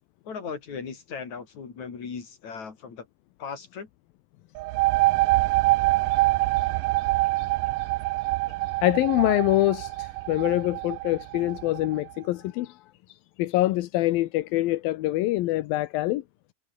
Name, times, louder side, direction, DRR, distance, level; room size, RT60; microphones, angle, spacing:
voice 1, 0.3-3.1 3.4-3.9, left 5 dB, 50° left, 5.3 m, -37 dB
sound 1, 4.6-12.0, right 20 dB, 80° right, 2.0 m, -25 dB
voice 2, 8.8-12.8 13.4-16.2, left 17 dB, 80° left, 2.7 m, -25 dB
omnidirectional pair, 4.2 m